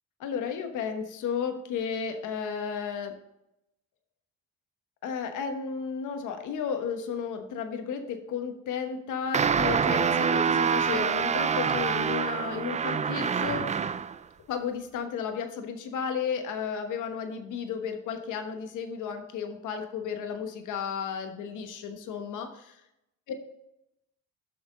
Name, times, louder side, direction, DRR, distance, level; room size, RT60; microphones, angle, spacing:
voice 1, 0.2-3.2 5.0-13.7 14.5-22.8 23.3-23.4, left 6 dB, 85° left, 6 dB, 1.2 m, -33 dB
sound 1, 9.3-14.2, right 6 dB, 25° right, 0.3 m, -26 dB
7.9 x 6.0 x 3.8 m, 0.85 s
cardioid pair, 90°, 30 cm